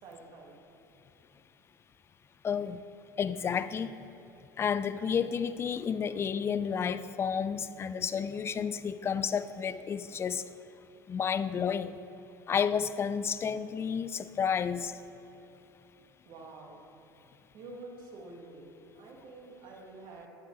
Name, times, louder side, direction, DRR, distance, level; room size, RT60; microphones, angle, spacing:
voice 1, 0.0-0.6 16.2-16.9 17.5-20.3, right 2 dB, 50° right, 1.7 m, -48 dB
voice 2, 2.4-2.8 3.2-3.9 4.6-10.4 11.1-12.0 12.5-14.9, left 7 dB, 25° left, 0.4 m, -31 dB
9.5 x 8.9 x 3.1 m
figure-of-eight pair, 70°, 10 cm